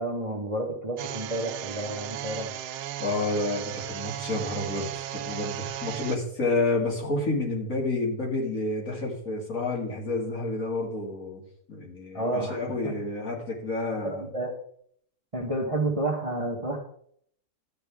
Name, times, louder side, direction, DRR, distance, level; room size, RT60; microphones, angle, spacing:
voice 1, 0.0-2.5 12.1-13.0 14.0-14.5 15.3-16.8, right 2 dB, 25° right, 1 dB, 1.1 m, -30 dB
sound 1, 1.0-6.2, right 11 dB, 90° right, 1.1 m, -36 dB
voice 2, 3.0-11.4 11.7-14.2, left 2 dB, 60° left, -1 dB, 2.6 m, -29 dB
12.0 x 8.5 x 3.5 m, 0.65 s
omnidirectional pair, 1.7 m